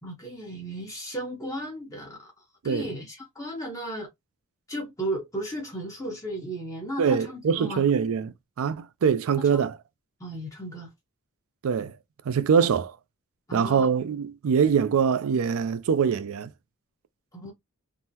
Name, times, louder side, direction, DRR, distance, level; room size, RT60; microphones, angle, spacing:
voice 1, 0.0-2.3 2.6-4.1 4.7-7.9 9.5-9.7 10.2-10.9 13.5-13.9 17.3-17.5, right 1 dB, 15° left, 0.9 m, -35 dB
voice 2, 7.0-9.8 11.6-12.0 12.3-13.0 13.5-16.5, right 6 dB, 65° right, 0.4 m, -24 dB
3.7 x 2.1 x 2.7 m
head